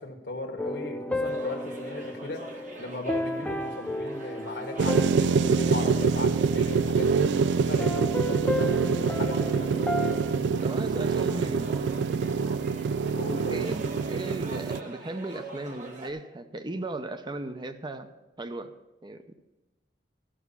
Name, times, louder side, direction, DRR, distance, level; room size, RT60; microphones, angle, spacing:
voice 1, 0.0-2.4 2.8-7.3 7.7-9.9 13.1-13.7, left 2 dB, 70° left, 2 dB, 1.4 m, -37 dB
sound 1, 0.6-7.2 7.8-10.4, left 1 dB, 10° left, 0.4 m, -33 dB
sound 2, 1.2-16.1, right 2 dB, 45° right, 1.4 m, -45 dB
sound 3, 4.8-14.8, right 5 dB, 75° right, 0.3 m, -25 dB
voice 2, 10.6-11.8 13.5-18.7 19.0-19.2, right 2 dB, 25° right, 9 dB, 0.7 m, -36 dB
12.5 x 6.0 x 6.9 m, 1.0 s
head